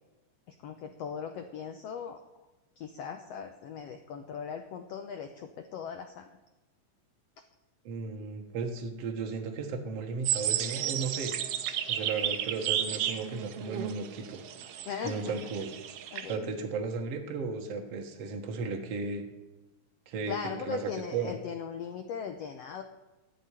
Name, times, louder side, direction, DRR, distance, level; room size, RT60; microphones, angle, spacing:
voice 1, 0.5-2.2 2.8-6.3 14.9-15.4 16.1-16.5 20.3-22.8, left 7 dB, 90° left, 7 dB, 1.4 m, -39 dB
voice 2, 7.8-11.3 11.9-14.4 15.0-15.7 16.3-19.2 20.1-21.4, right 4 dB, 55° right, 3 dB, 2.3 m, -35 dB
sound 1, 10.2-16.4, right 10 dB, 85° right, 1.3 m, -33 dB
16.0 x 6.2 x 9.9 m, 1.1 s
omnidirectional pair, 4.0 m